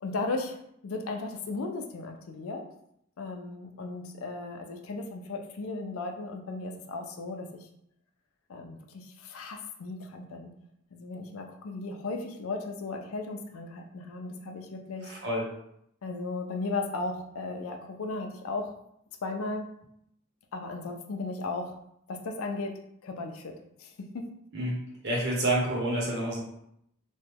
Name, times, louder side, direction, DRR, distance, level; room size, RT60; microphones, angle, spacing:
voice 1, 0.0-0.6 0.8-2.6 3.2-7.5 8.5-10.5 10.9-15.1 16.0-18.7 19.2-19.7 20.5-21.8 22.1-22.7 23.0-23.5 23.8-24.2, left 3 dB, 75° left, 3 dB, 0.5 m, -36 dB
voice 2, 15.0-15.5 24.5-24.8 25.0-26.4, right 1 dB, 55° right, -3 dB, 1.0 m, -28 dB
3.0 x 2.2 x 3.4 m, 0.75 s
head